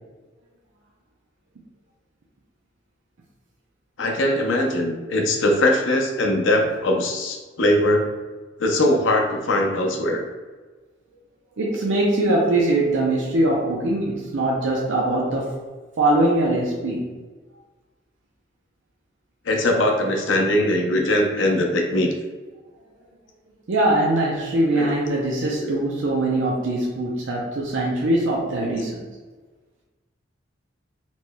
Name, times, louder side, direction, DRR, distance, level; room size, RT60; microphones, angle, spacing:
voice 1, 4.0-8.1 8.6-10.2 19.5-22.1 24.7-24.9 25.6-25.8, left 1 dB, 80° left, 2 dB, 0.6 m, -21 dB
voice 2, 11.6-15.6 16.0-17.2 23.7-29.1, right 1 dB, 75° right, -3 dB, 0.5 m, -22 dB
4.2 x 3.1 x 2.2 m, 1.3 s
head